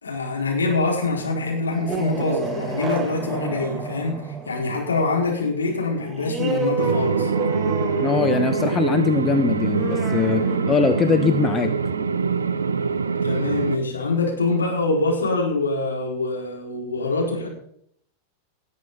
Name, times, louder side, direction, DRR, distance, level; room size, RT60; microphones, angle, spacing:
voice 1, 0.0-7.3 13.2-17.5, left 3 dB, 75° left, -1 dB, 4.3 m, -24 dB
sound 1, 1.6-12.8, right 3 dB, 15° right, 1.4 m, -31 dB
sound 2, 6.8-13.8, right 5 dB, 70° right, 0.7 m, -24 dB
voice 2, 8.0-11.7, left 5 dB, 20° left, 9 dB, 0.9 m, -22 dB
18.5 x 7.5 x 5.5 m, 0.69 s
figure-of-eight pair, 90°, 0 cm